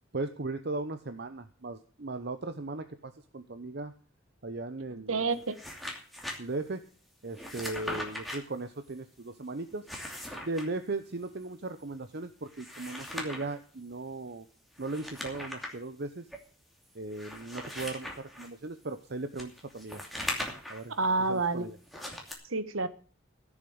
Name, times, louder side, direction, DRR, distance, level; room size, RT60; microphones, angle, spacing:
voice 1, 0.1-3.9 4.4-5.3 6.4-6.8 7.2-9.9 10.4-14.5 14.8-16.3 16.9-20.0 20.7-21.0 21.3-21.8, right 2 dB, 50° right, 0.8 m, -37 dB
voice 2, 4.9-5.6 20.9-21.7 22.5-22.9, right 3 dB, 85° right, 1.3 m, -29 dB
sound 1, 5.4-6.4 7.3-8.4 9.7-10.7 12.5-13.6 14.8-15.8 16.3-16.4 17.1-18.5 19.4-20.9 21.9-22.3, left 1 dB, ahead, 2.7 m, -39 dB
15.5 x 7.3 x 7.9 m
head